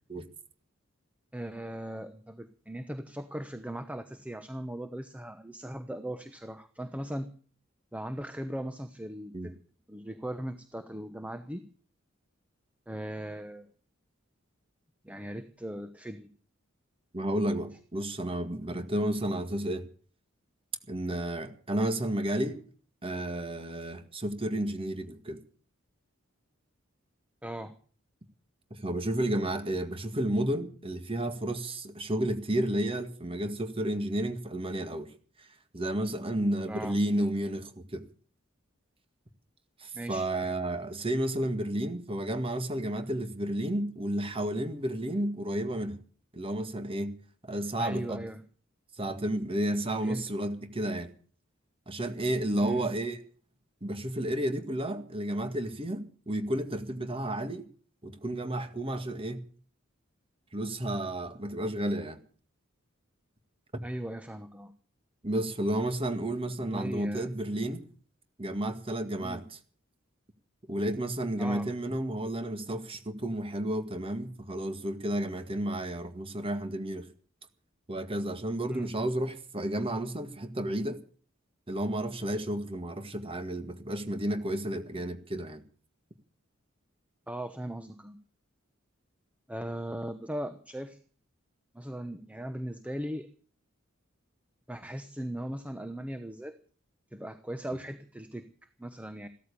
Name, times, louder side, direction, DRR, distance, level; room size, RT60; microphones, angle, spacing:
voice 1, 1.3-7.3 7.9-9.6 9.9-11.7 12.9-13.7 15.0-16.3 27.4-27.8 36.7-37.0 39.9-40.3 47.8-48.4 50.0-50.2 52.6-52.9 63.8-64.7 66.6-67.3 69.2-69.4 71.4-71.7 78.7-78.9 87.3-88.2 89.5-91.0 91.7-93.3 94.7-96.6 97.1-98.5 98.8-99.3, right 1 dB, 5° right, 10 dB, 1.0 m, -38 dB
voice 2, 17.1-19.9 20.9-22.6 23.0-25.4 28.7-35.1 35.4-35.5 35.7-38.0 39.8-46.0 46.3-47.2 47.4-48.2 49.0-51.1 51.9-53.2 53.8-57.6 58.0-59.5 60.5-62.2 63.7-63.8 65.2-67.8 68.4-69.4 70.7-77.1 77.9-81.0 81.7-85.6, right 1 dB, 30° right, 9 dB, 1.9 m, -32 dB
15.5 x 13.5 x 6.9 m, 0.43 s
head